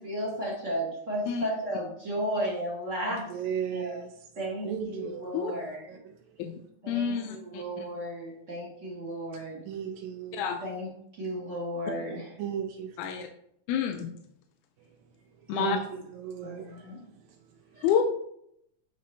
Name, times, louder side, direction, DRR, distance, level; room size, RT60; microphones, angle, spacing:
voice 1, 0.0-3.3 3.7-4.0 4.4-5.8 6.8-9.6 10.6-10.9 11.2-12.3 15.5-15.8 16.4-17.0 17.7-17.9, equal, 40° right, 1.1 m, -34 dB
voice 2, 3.3-4.1 4.6-5.6 5.9-6.0 9.7-10.4 12.4-13.3 15.5-15.8 16.2-16.8, right 8 dB, 80° right, 1.7 m, -35 dB
voice 3, 6.9-7.9 10.3-10.6 13.0-13.3 13.7-14.1 15.5-15.8 17.8-18.0, left 8 dB, 90° left, 2.1 m, -28 dB
8.2 x 4.0 x 3.2 m
omnidirectional pair, 3.5 m